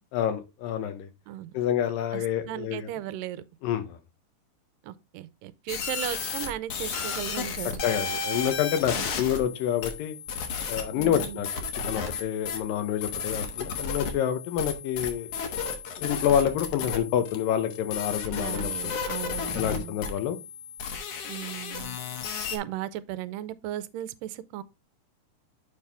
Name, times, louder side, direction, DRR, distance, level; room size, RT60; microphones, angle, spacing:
voice 1, 0.1-1.1 1.5-2.9 3.6-4.0 7.8-10.2 10.7-11.5 11.9-15.3 15.6-19.0 19.6-20.4, left 9 dB, 90° left, 2.6 m, -28 dB
voice 2, 2.1-3.4 4.8-7.8 8.9-9.1 10.9-11.5 18.3-20.0 21.3-22.0 22.5-24.6, right 13 dB, 90° right, 2.2 m, -36 dB
sound 1, 5.7-22.6, left 5 dB, 60° left, 1.9 m, -33 dB
7.2 x 5.5 x 3.4 m
omnidirectional pair, 3.8 m